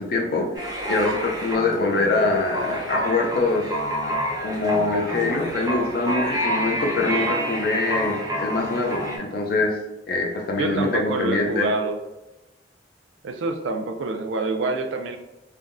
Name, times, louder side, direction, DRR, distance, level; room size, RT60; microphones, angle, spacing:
voice 1, 0.0-3.7 4.4-9.8 10.1-11.7, left 3 dB, 55° left, 0 dB, 0.5 m, -24 dB
sound 1, 0.5-9.2, equal, 20° right, 0.6 m, -28 dB
voice 2, 10.6-12.0 13.2-15.2, right 3 dB, 85° right, 6 dB, 0.4 m, -26 dB
3.4 x 2.2 x 2.5 m, 1.0 s
head